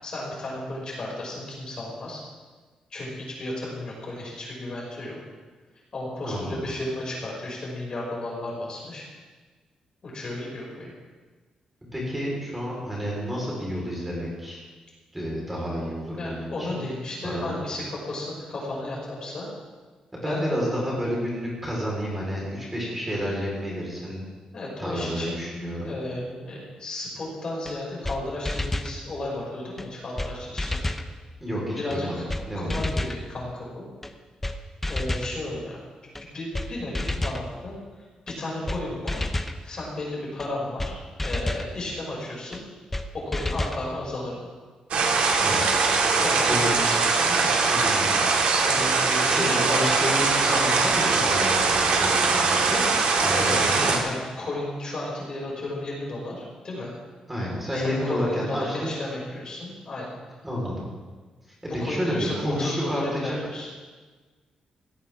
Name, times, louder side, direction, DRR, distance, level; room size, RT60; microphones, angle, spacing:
voice 1, 0.0-2.2 2.9-5.2 5.9-9.1 10.0-10.9 16.2-19.5 20.2-20.5 24.5-25.4 25.8-30.9 31.7-32.3 32.5-33.9 34.9-35.7 36.2-39.3 39.6-42.6 43.1-44.5 46.2-47.5 48.7-50.0 53.3-53.8 54.0-56.9 57.7-60.2 61.8-63.7, left 1 dB, 40° left, -4 dB, 6.0 m, -33 dB
voice 2, 6.2-6.6 11.9-14.6 15.1-16.8 17.2-17.5 20.1-24.2 24.8-25.9 31.4-32.9 45.4-45.7 46.5-46.8 47.7-48.4 49.3-54.0 57.3-58.9 60.4-60.9 61.8-63.4, equal, 10° right, -4 dB, 4.3 m, -30 dB
sound 1, 27.7-27.8 28.0-28.2 28.5-28.9 29.8-29.9 30.2-30.3 30.6-31.1 31.9-32.0 32.3-32.4 32.7-33.2 34.0-34.1 34.4-34.6 34.8-35.3 36.2-36.3 36.5-36.7 36.9-37.4 38.3-38.4 38.7-38.8 39.1-39.6 40.4-40.5 40.8-40.9 41.2-41.7 42.5-42.6 42.9-43.1 43.3-43.8, left 1 dB, 10° left, 0.8 m, -29 dB
sound 2, 44.9-54.0, right 4 dB, 85° right, 2.6 m, -22 dB
17.5 x 16.5 x 3.6 m, 1.4 s
wide cardioid pair, 150°, 2 cm